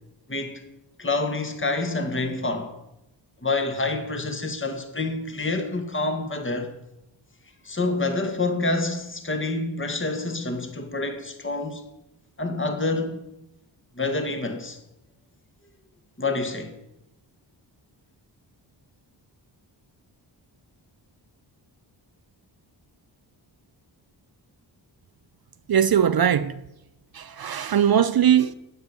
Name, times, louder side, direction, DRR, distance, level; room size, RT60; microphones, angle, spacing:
voice 1, 0.3-0.6 1.0-2.8 3.4-6.7 7.6-11.8 12.4-13.2 14.0-14.8 16.2-16.7, left 3 dB, 25° left, 2.1 m, -27 dB
voice 2, 25.7-26.5 27.1-28.5, right 9 dB, 55° right, 0.7 m, -20 dB
12.5 x 8.0 x 9.1 m
cardioid pair, 75°, 44 cm